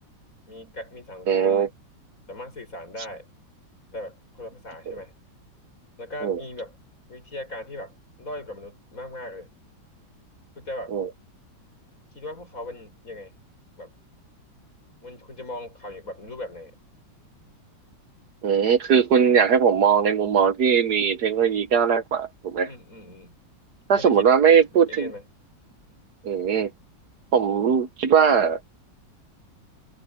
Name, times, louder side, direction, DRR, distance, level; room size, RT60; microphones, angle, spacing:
voice 1, 0.5-1.7 2.3-3.3 3.9-5.1 6.0-6.8 7.1-9.5 10.5-11.0 12.1-13.3 13.8-13.9 15.0-16.7 22.6-23.4 24.0-25.3, left 1 dB, 45° left, 6.4 m, -38 dB
voice 2, 1.3-1.7 4.9-5.0 6.2-6.4 10.9-11.1 18.4-22.7 23.9-25.1 26.2-26.7 27.3-28.6, right 7 dB, 60° right, 1.5 m, -20 dB
omnidirectional pair, 2.0 m